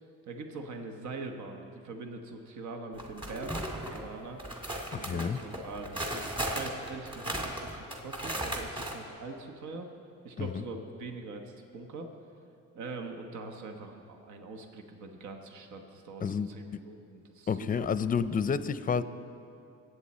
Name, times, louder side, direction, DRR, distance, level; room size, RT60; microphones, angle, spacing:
voice 1, 0.3-4.4 4.9-9.9 10.2-12.1 12.7-17.9, right 3 dB, 75° right, 4 dB, 1.2 m, -43 dB
sound 1, 3.0-4.0 4.4-8.9, right 1 dB, 15° right, 2.0 m, -36 dB
voice 2, 4.9-5.4 10.4-10.6 16.2-16.8 17.5-19.0, left 6 dB, 30° left, 14 dB, 0.5 m, -30 dB
22.0 x 8.4 x 4.2 m, 2.7 s
cardioid pair, 90°, 30 cm